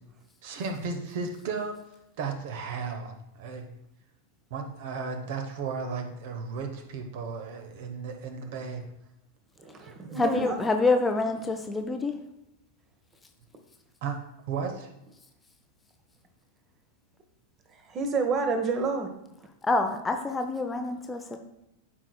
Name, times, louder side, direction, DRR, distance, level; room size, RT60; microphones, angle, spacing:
voice 1, 0.4-1.8 2.2-3.7 4.5-8.8 10.0-10.2 14.0-14.2 14.5-14.9, right 5 dB, 50° right, 5 dB, 1.0 m, -34 dB
voice 2, 9.6-10.6 17.9-19.1, right 4 dB, 30° right, 6 dB, 1.1 m, -29 dB
voice 3, 10.2-12.1 19.6-21.4, left 3 dB, 15° left, 5 dB, 0.6 m, -26 dB
12.5 x 4.8 x 2.3 m, 0.86 s
figure-of-eight pair, 90°, 0 cm